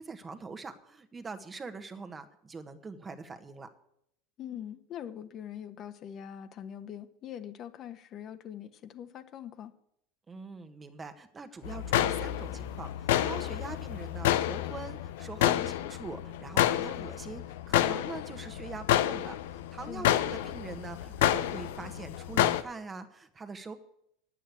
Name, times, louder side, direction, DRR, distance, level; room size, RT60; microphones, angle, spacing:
voice 1, 0.0-3.7 10.3-23.8, right 4 dB, 20° right, 9 dB, 1.4 m, -43 dB
voice 2, 4.4-9.7 15.4-15.7 19.9-20.1, left 9 dB, 45° left, 9 dB, 1.2 m, -43 dB
sound 1, 11.6-22.6, left 12 dB, 80° left, 0.7 m, -29 dB
9.2 x 8.7 x 8.3 m, 0.75 s
supercardioid pair, 100°, 0 cm